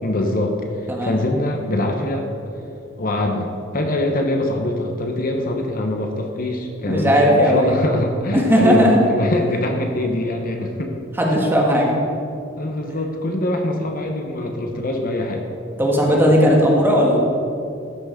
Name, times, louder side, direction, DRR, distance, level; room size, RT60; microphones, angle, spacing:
voice 1, 0.0-2.3 3.0-10.9 11.4-11.5 12.6-15.4 16.1-16.7, left 1 dB, 45° left, 3 dB, 0.9 m, -23 dB
voice 2, 6.9-7.7 8.3-9.0 11.2-11.9 15.8-17.2, equal, 10° right, -2 dB, 1.5 m, -16 dB
13.5 x 6.1 x 5.0 m, 2.6 s
head